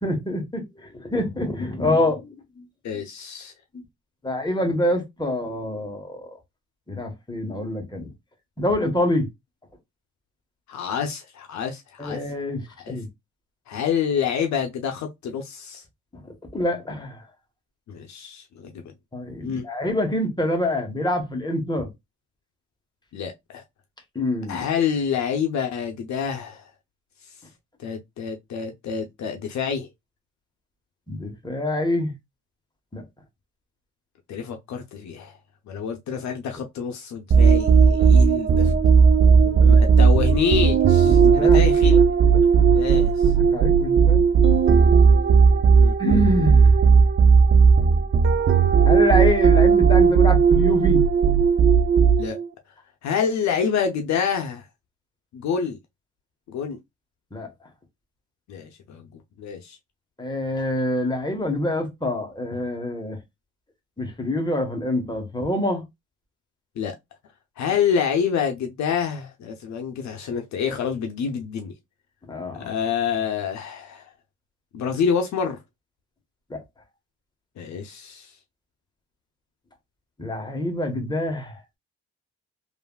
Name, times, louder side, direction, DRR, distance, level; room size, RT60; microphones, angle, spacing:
voice 1, 0.0-2.6 4.2-6.3 6.9-8.1 8.6-9.3 12.0-13.1 16.1-16.2 16.5-17.2 19.1-21.9 24.1-24.6 31.1-32.1 32.9-33.0 38.0-38.3 38.6-38.7 39.3-39.8 41.0-41.6 42.3-42.8 43.2-44.3 46.0-46.8 48.8-51.0 57.3-57.5 60.2-63.2 64.0-65.8 72.3-72.7 76.5-76.6 80.2-81.6, left 1 dB, 15° left, 1.1 m, -26 dB
voice 2, 2.8-3.5 10.7-12.2 12.8-13.0 13.7-15.8 17.9-18.9 19.4-19.7 23.1-23.6 24.5-26.7 27.8-29.9 34.3-35.4 35.7-38.7 39.6-42.1 42.7-43.3 45.8-45.9 52.2-52.4 53.0-54.6 55.3-55.8 56.5-56.8 58.5-59.1 59.4-59.8 66.8-67.0 67.6-71.7 72.5-74.1 74.7-75.6 77.6-78.3, left 7 dB, 65° left, 0.6 m, -27 dB
sound 1, 37.3-52.5, right 6 dB, 40° right, 0.6 m, -16 dB
3.2 x 2.5 x 2.2 m
cardioid pair, 90°, 30 cm